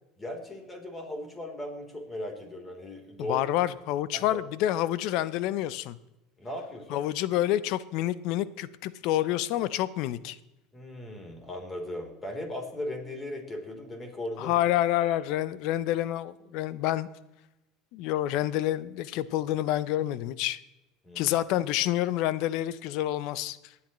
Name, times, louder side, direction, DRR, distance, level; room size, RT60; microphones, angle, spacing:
voice 1, 0.2-3.4 4.1-4.4 6.4-7.0 10.7-14.6 15.0-15.1 21.0-21.4, left 1 dB, 20° left, 2 dB, 3.6 m, -38 dB
voice 2, 3.3-6.0 6.9-10.4 14.4-17.1 17.9-20.6 21.2-23.6, left 13 dB, 65° left, 17 dB, 0.6 m, -28 dB
22.5 x 8.5 x 3.1 m, 0.98 s
supercardioid pair, 100°, 0 cm